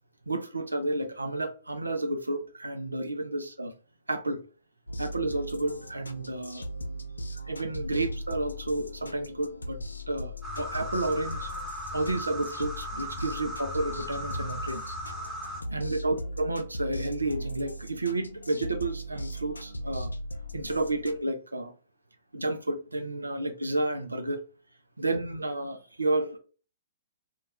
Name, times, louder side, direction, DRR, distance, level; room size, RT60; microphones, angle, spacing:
voice 1, 0.3-3.7 4.1-4.4 5.0-6.6 7.5-9.8 10.1-11.5 11.9-15.0 15.7-20.1 20.5-21.7 22.3-24.4 25.0-26.4, right 2 dB, 90° right, 0.4 m, -31 dB
sound 1, 4.9-21.2, equal, 85° left, 0.4 m, -39 dB
sound 2, 10.4-15.6, equal, 5° right, 1.0 m, -37 dB
2.3 x 2.2 x 3.8 m
figure-of-eight pair, 120°, 0 cm